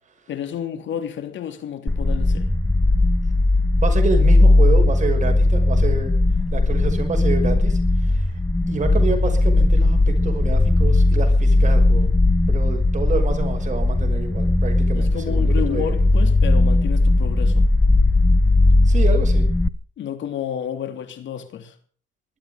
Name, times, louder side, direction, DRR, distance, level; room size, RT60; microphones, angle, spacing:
voice 1, 0.3-2.5 14.9-17.7 20.0-21.7, left 9 dB, 70° left, 3.2 m, -31 dB
sound 1, 1.9-19.7, left 2 dB, 10° left, 1.0 m, -17 dB
voice 2, 3.8-6.1 6.5-8.3 8.7-12.1 12.5-15.9 18.8-19.5, right 4 dB, 40° right, 6.0 m, -28 dB
19.5 x 13.0 x 5.2 m
cardioid pair, 90°, 20 cm